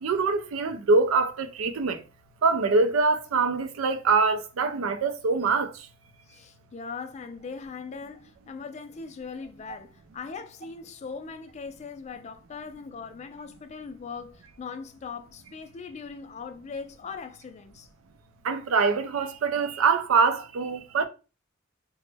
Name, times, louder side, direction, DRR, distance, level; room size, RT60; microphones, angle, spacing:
voice 1, 0.0-2.0 2.4-5.7 18.4-21.1, right 4 dB, 80° right, 0.4 m, -24 dB
voice 2, 6.3-17.9, left 5 dB, 35° left, 0.3 m, -40 dB
2.9 x 2.1 x 3.3 m
head